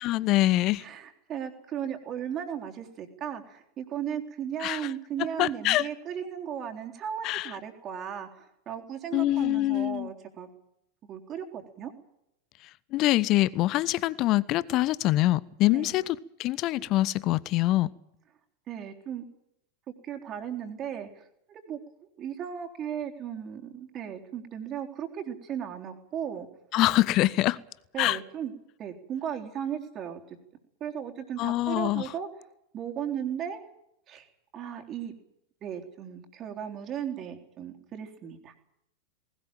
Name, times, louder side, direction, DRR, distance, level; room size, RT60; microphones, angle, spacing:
voice 1, 0.0-0.8 4.6-4.9 5.4-5.9 7.2-7.5 9.1-10.1 12.9-17.9 26.7-27.6 28.0-28.2 31.4-32.0, left 16 dB, 40° left, 0.8 m, -25 dB
voice 2, 0.8-10.5 11.1-11.9 15.7-16.0 18.7-19.3 20.0-21.8 22.2-26.5 27.9-28.5 28.8-30.4 30.8-32.3 32.7-33.6 34.1-34.3 34.5-35.1 35.6-38.5, right 9 dB, 30° right, 3.7 m, -36 dB
20.0 x 18.5 x 9.0 m
figure-of-eight pair, 90°, 0 cm